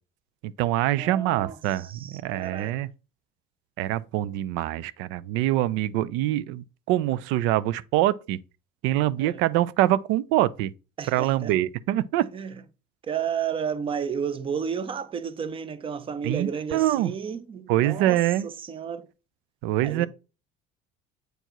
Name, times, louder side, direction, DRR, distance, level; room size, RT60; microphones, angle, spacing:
voice 1, 0.4-2.9 3.8-8.4 8.8-10.7 11.1-12.3 16.2-17.1 17.7-18.5 19.6-20.1, right 14 dB, 75° right, 0.4 m, -24 dB
voice 2, 0.9-2.7 9.2-9.4 11.0-11.5 12.3-12.5 13.1-19.1 19.8-20.1, right 7 dB, 25° right, 0.6 m, -32 dB
7.9 x 4.5 x 3.0 m
cardioid pair, 120°, 20 cm